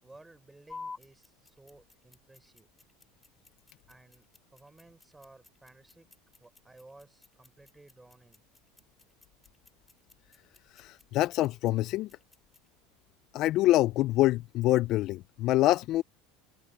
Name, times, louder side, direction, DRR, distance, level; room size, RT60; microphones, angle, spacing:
voice 1, 0.0-2.7 3.9-6.1 6.4-8.4, right 2 dB, 10° right, 4.9 m, -56 dB
sound 1, 0.7-12.7, left 4 dB, 15° left, 2.2 m, -52 dB
voice 2, 10.8-12.1 13.3-16.0, left 16 dB, 50° left, 0.4 m, -25 dB
supercardioid pair, 130°, 0 cm